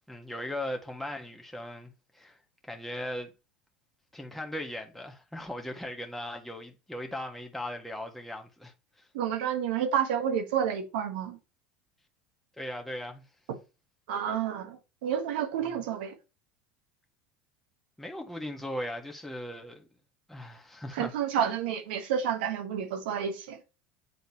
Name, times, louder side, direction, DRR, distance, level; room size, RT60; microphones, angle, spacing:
voice 1, 0.1-2.4 2.6-3.3 4.1-8.7 12.6-13.2 15.7-15.8 18.0-19.9 20.3-21.1 21.4-21.5, left 1 dB, 5° left, 1.4 m, -38 dB
voice 2, 9.1-11.4 14.1-16.1 20.9-23.6, right 8 dB, 75° right, 1.2 m, -30 dB
8.1 x 3.9 x 2.9 m
hypercardioid pair, 90°, 5 cm